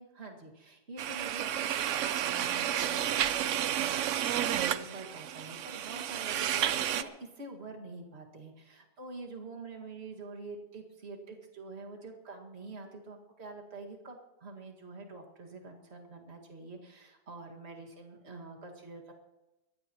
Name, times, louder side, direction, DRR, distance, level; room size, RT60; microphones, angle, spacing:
voice 1, 0.0-19.1, right 3 dB, 35° right, 1 dB, 2.1 m, -46 dB
sound 1, 1.0-7.0, right 10 dB, 70° right, 0.7 m, -31 dB
22.0 x 16.0 x 3.0 m, 1.0 s
omnidirectional pair, 1.9 m